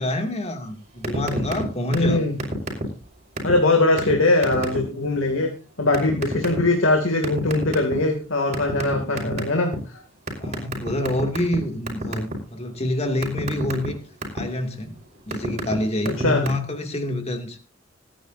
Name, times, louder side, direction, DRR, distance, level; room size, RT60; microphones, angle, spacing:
voice 1, 0.0-2.3 9.1-9.4 10.3-14.0 14.3-15.0 15.3-17.6, left 1 dB, 35° left, 2.5 m, -27 dB
sound 1, 1.0-1.6 1.9-2.1 2.4-3.0 3.4-3.5 4.0-4.1 4.4-4.8 5.9-6.6 7.2-8.1 8.5-9.8 10.3-11.6 11.9-12.3 12.7-14.4 15.0-15.7 16.0-16.5, right 2 dB, 35° right, 5.7 m, -28 dB
voice 2, 1.9-2.4 3.4-5.5 5.8-10.0 16.2-16.4, left 2 dB, 75° left, 2.6 m, -21 dB
25.5 x 10.0 x 2.7 m
head